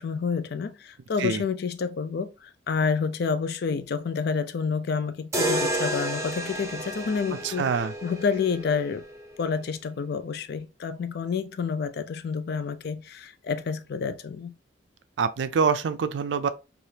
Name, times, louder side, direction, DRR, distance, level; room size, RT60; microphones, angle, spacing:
voice 1, 0.0-9.0 9.4-14.5, left 5 dB, 55° left, 0.4 m, -29 dB
sound 1, 5.3-9.4, right 1 dB, 15° right, 0.6 m, -31 dB
voice 2, 7.4-7.9 15.2-16.5, right 6 dB, 70° right, 0.4 m, -25 dB
3.3 x 2.4 x 2.7 m
head